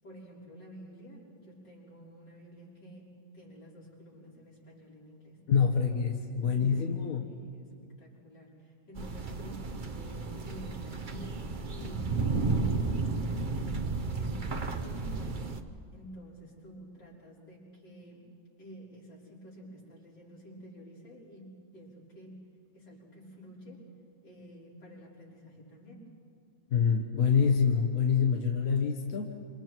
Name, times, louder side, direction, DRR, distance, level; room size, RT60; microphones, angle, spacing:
voice 1, 0.0-3.1 3.3-5.4 6.3-7.7 8.0-13.8 14.2-15.5 15.9-18.2 18.6-22.4 22.7-23.8 24.2-26.1, equal, 65° left, -6 dB, 6.3 m, -50 dB
voice 2, 5.5-7.3 26.7-29.3, left 6 dB, 50° left, 2 dB, 1.6 m, -26 dB
sound 1, 8.9-15.6, right 3 dB, 40° right, 0.8 m, -33 dB
27.0 x 27.0 x 4.6 m, 2.3 s
omnidirectional pair, 2.1 m